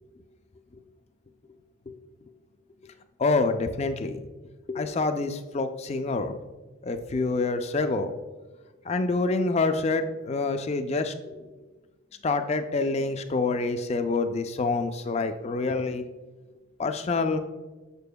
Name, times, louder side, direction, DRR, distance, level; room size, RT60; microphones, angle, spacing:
voice 1, 3.2-4.2 4.7-6.4 6.8-8.1 8.9-11.5 12.2-16.0 16.8-17.4, left 3 dB, 30° left, 8 dB, 0.3 m, -27 dB
6.9 x 6.7 x 2.2 m, 1.2 s
head